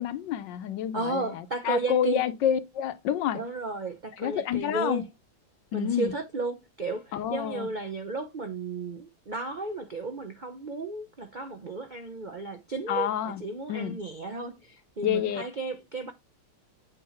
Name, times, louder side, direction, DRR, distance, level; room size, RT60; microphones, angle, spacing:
voice 1, 0.0-3.4 4.2-5.0 5.7-6.1 7.1-7.7 12.9-13.4 13.7-14.0 15.0-15.4, left 10 dB, 70° left, 1.3 m, -28 dB
voice 2, 0.9-2.2 3.3-5.1 5.7-16.1, right 3 dB, 75° right, 0.4 m, -34 dB
8.6 x 2.9 x 5.6 m
omnidirectional pair, 2.1 m